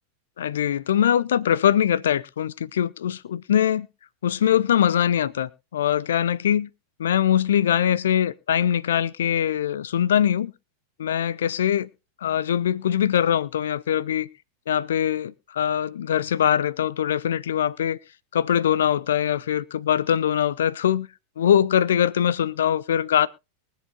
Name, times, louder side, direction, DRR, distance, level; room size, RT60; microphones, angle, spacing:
voice 1, 0.4-3.9 4.2-6.7 7.0-10.5 11.0-11.9 12.2-14.3 14.7-18.0 18.3-21.1 21.4-23.3, left 9 dB, 60° left, 0.6 m, -22 dB
23.0 x 7.6 x 2.5 m
figure-of-eight pair, 90°, 0 cm